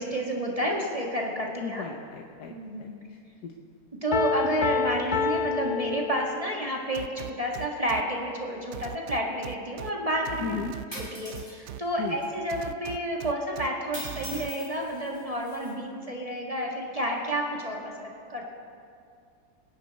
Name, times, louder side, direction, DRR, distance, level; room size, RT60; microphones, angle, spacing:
voice 1, 0.0-1.8 2.5-2.9 4.0-10.6 10.9-18.4, equal, 25° right, -2 dB, 1.8 m, -30 dB
voice 2, 1.6-2.5 2.8-2.9 3.4-3.5 10.4-10.7 12.0-12.2, left 7 dB, 90° left, 2 dB, 1.4 m, -35 dB
Piano, 4.1-6.7, left 6 dB, 35° left, 0.8 m, -29 dB
sound 1, 6.9-8.0 8.7-9.9 10.3-11.8 12.5-13.7 14.0-14.5, right 10 dB, 70° right, 0.7 m, -39 dB
sound 2, 10.9-11.5 12.2-12.3 13.9-15.7, equal, 15° left, 3.0 m, -42 dB
26.0 x 10.5 x 4.1 m, 2.3 s
omnidirectional pair, 1.7 m